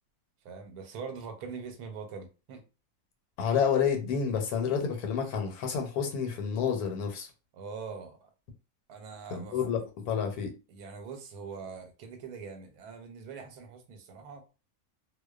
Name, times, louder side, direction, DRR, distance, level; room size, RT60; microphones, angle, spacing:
voice 1, 0.4-2.6 7.5-8.3 8.9-10.2 10.7-14.4, right 5 dB, 85° right, 1.2 m, -43 dB
voice 2, 3.4-7.3 9.3-10.5, left 7 dB, 85° left, 1.2 m, -29 dB
2.5 x 2.2 x 2.3 m
omnidirectional pair, 1.6 m